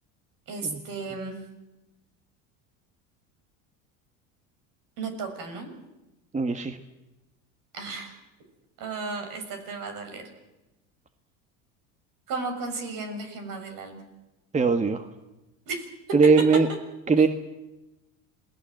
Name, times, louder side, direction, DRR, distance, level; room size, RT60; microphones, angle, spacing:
voice 1, 0.5-1.4 5.0-5.7 7.7-8.1 8.8-10.2 12.3-14.0 15.7-15.8, right 4 dB, 55° right, 6 dB, 6.9 m, -34 dB
voice 2, 6.3-6.8 14.5-15.1 16.1-16.7 17.1-17.3, right 4 dB, 20° right, 9 dB, 1.5 m, -20 dB
28.0 x 19.0 x 7.8 m, 1.0 s
supercardioid pair, 90°, 39 cm